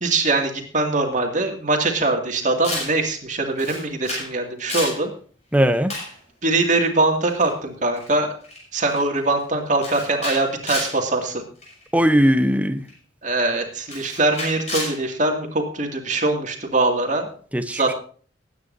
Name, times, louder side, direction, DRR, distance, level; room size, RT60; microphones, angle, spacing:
voice 1, 0.0-5.1 6.4-8.3 8.7-11.4 13.2-17.3 17.7-17.9, right 2 dB, 40° right, 2.3 m, -22 dB
Camera, 2.6-3.0 3.6-4.3 4.6-5.0 5.9-6.1 7.3-7.5 8.0-8.1 8.4-8.6 8.9-9.2 9.8-11.0 11.6-11.8 12.9-13.0 13.9-15.0, left 2 dB, 35° left, 6.9 m, -30 dB
voice 2, 5.5-5.9 11.9-12.8 17.5-17.9, equal, 5° right, 0.8 m, -19 dB
21.0 x 9.6 x 2.7 m
head